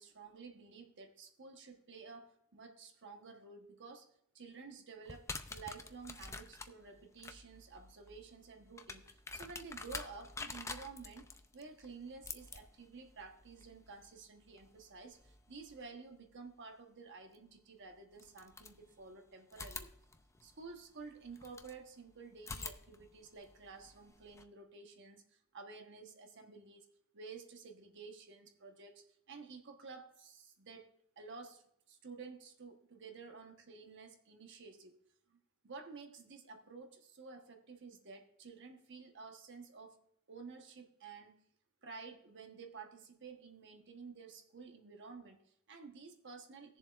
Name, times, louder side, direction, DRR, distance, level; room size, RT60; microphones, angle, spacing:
voice 1, 0.0-4.1 4.3-19.9 20.4-26.9 27.1-30.9 31.2-35.0 35.3-35.4 35.6-40.0 40.3-41.3 41.8-46.8, right 4 dB, 55° right, 4 dB, 1.2 m, -52 dB
sound 1, 5.1-15.9 17.3-17.4 18.1-19.1 19.5-21.8 22.4-24.4, left 3 dB, 15° left, 0.4 m, -49 dB
18.5 x 7.1 x 2.4 m, 0.71 s
head